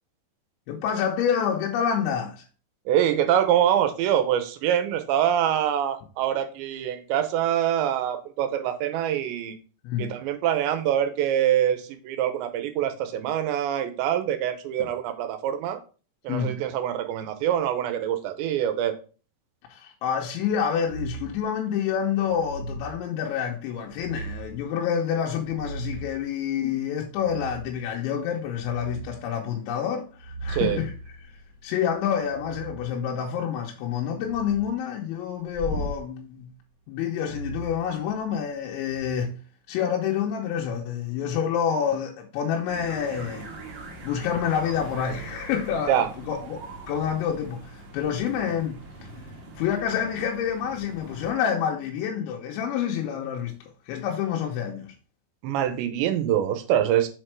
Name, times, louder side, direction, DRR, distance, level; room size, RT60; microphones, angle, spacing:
voice 1, 0.7-2.4 9.8-10.2 16.3-16.6 19.7-31.4 31.6-36.5 36.9-39.4 39.7-43.5 44.0-48.8 49.6-53.6 53.9-54.9, left 8 dB, 90° left, 3.2 m, -28 dB
voice 2, 2.9-9.6 10.0-15.8 16.2-19.0 30.5-30.8 45.9-46.1 55.4-57.1, right 10 dB, 85° right, 3.0 m, -24 dB
sound 1, 20.8-21.4 22.2-23.0 23.9-24.6 25.2-26.2 27.2-27.8 28.2-29.1 30.1-32.8 34.1-34.7 35.5-36.0 37.2-38.4 38.9-39.1, right 2 dB, 45° right, 1.7 m, -37 dB
sound 2, 42.7-51.3, right 2 dB, 65° right, 1.5 m, -42 dB
6.9 x 4.4 x 4.6 m
omnidirectional pair, 5.2 m